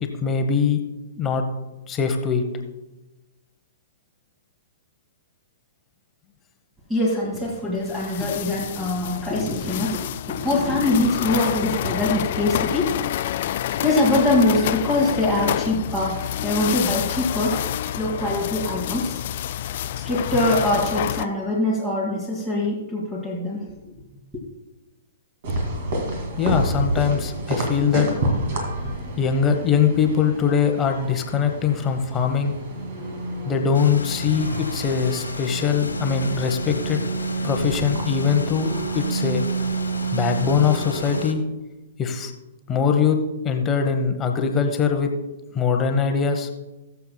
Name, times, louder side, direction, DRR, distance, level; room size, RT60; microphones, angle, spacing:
voice 1, 0.0-0.8 1.1-1.4 1.9-2.4 26.4-28.1 29.2-32.6 33.4-37.0 37.4-39.4 40.1-41.4 42.0-42.3 42.7-43.2 43.4-45.1 45.5-46.5, left 6 dB, 20° left, 4 dB, 1.0 m, -22 dB
voice 2, 6.9-13.0 13.8-17.6 18.0-19.2 19.9-23.6, left 2 dB, 10° right, -3 dB, 2.0 m, -23 dB
sound 1, 7.8-21.3, left 12 dB, 50° left, 0.3 m, -28 dB
sound 2, 25.4-41.2, right 2 dB, 50° right, 2.3 m, -29 dB
sound 3, 33.7-41.3, left 3 dB, 80° left, 1.2 m, -37 dB
20.0 x 6.9 x 2.2 m, 1.0 s
figure-of-eight pair, 115°, 0 cm